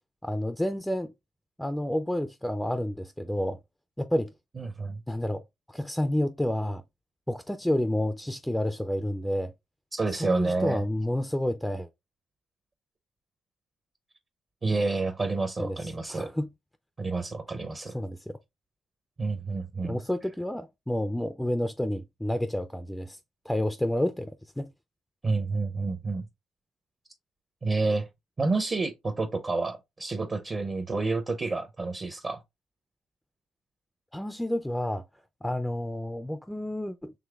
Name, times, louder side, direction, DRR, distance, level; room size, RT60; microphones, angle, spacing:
voice 1, 0.2-1.1 1.6-3.6 4.0-4.3 5.1-5.4 5.7-6.8 7.3-9.5 10.1-11.9 15.6-16.5 17.9-18.4 19.8-23.2 23.5-24.7 34.1-35.0 35.4-37.1, left 1 dB, 5° left, 0.3 m, -30 dB
voice 2, 4.6-5.0 9.9-10.8 14.6-16.3 17.0-17.9 19.2-20.0 25.2-26.2 27.6-28.1 28.4-32.4, right 3 dB, 35° right, 0.6 m, -29 dB
5.0 x 3.1 x 2.3 m
cardioid pair, 90°, 0 cm